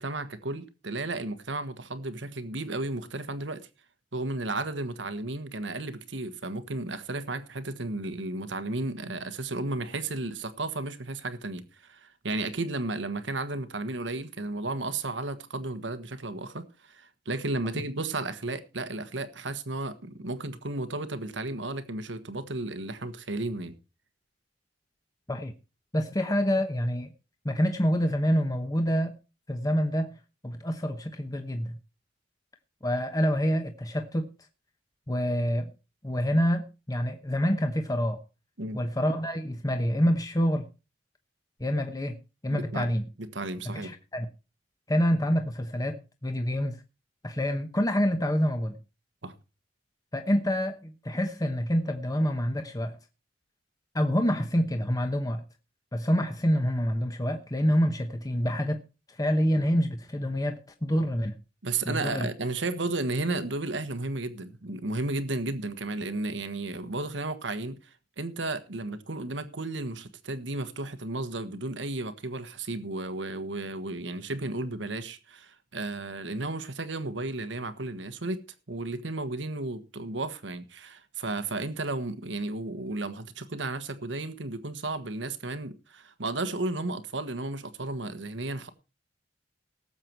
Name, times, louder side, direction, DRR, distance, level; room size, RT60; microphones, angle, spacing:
voice 1, 0.0-3.6 4.1-23.7 38.6-38.8 42.5-42.9 43.2-43.9 49.2-49.3 61.6-67.8 68.2-78.4 78.7-88.7, right 2 dB, 90° right, 1.4 m, -33 dB
voice 2, 25.9-27.1 27.4-29.1 29.5-30.1 30.4-31.8 32.8-34.3 35.1-35.7 36.0-38.2 38.7-40.7 41.6-42.2 42.4-43.0 43.6-44.3 44.9-46.8 47.2-48.8 50.1-53.0 53.9-55.4 55.9-58.8 59.1-61.4 61.9-62.3, equal, 20° left, 1.0 m, -27 dB
18.5 x 7.7 x 4.6 m
head